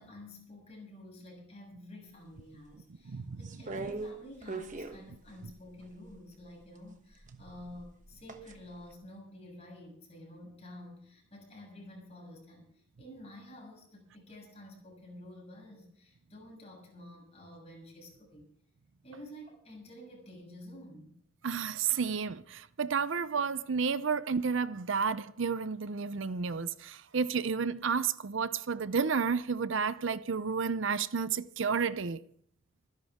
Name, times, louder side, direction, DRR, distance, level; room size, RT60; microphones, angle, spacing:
voice 1, 0.0-18.5 19.0-21.2, left 1 dB, 30° left, 6.5 m, -50 dB
voice 2, 3.0-3.4 3.7-3.8 21.4-32.2, right 5 dB, 65° right, 0.6 m, -31 dB
sound 1, 3.4-6.2 7.1-8.6 8.9-9.0, right 3 dB, 40° right, 1.2 m, -41 dB
25.0 x 11.0 x 3.6 m
head